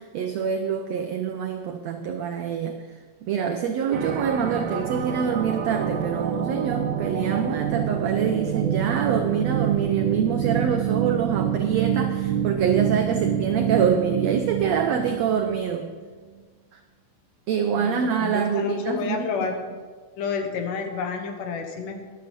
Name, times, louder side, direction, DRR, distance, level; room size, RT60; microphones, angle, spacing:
voice 1, 0.0-2.8 3.2-15.9 17.5-19.3, right 7 dB, 85° right, 5 dB, 1.4 m, -25 dB
sound 1, 3.9-15.7, right 9 dB, 65° right, 1.9 m, -27 dB
voice 2, 17.8-19.6 20.2-22.1, left 5 dB, 70° left, 5 dB, 2.8 m, -30 dB
13.5 x 10.5 x 5.3 m, 1.5 s
omnidirectional pair, 4.0 m